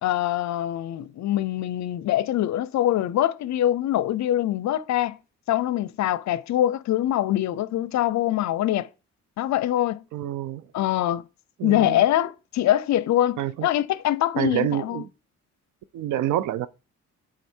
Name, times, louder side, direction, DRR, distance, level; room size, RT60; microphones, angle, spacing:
voice 1, 0.0-5.2 5.5-8.9 9.4-10.0 10.7-11.2 11.6-15.0, left 13 dB, 65° left, 0.5 m, -24 dB
voice 2, 10.1-10.6 11.6-12.0 13.4-13.7 14.4-15.1 15.9-16.7, right 13 dB, 75° right, 0.5 m, -27 dB
8.1 x 3.7 x 4.4 m
cardioid pair, 90°, 30 cm